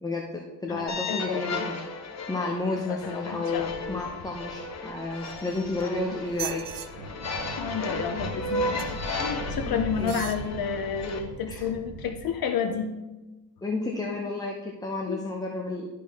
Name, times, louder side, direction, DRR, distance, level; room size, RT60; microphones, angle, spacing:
voice 1, 0.0-1.7 2.3-6.8 9.6-10.1 11.5-11.6 13.6-15.9, left 3 dB, 10° left, 0 dB, 0.7 m, -31 dB
voice 2, 0.6-1.7 2.9-4.0 5.8-6.2 7.6-12.9 15.1-15.2, left 6 dB, 60° left, 7 dB, 0.7 m, -31 dB
sound 1, 0.9-11.2, left 2 dB, 40° left, 1.1 m, -35 dB
sound 2, 3.5-12.3, right 1 dB, 85° right, 1.2 m, -41 dB
sound 3, 5.1-5.8 6.3-6.9 8.8-9.1 10.0-10.4 11.1-11.2, right 11 dB, 55° right, 0.6 m, -39 dB
12.0 x 4.6 x 3.5 m, 1.1 s
cardioid pair, 130°, 41 cm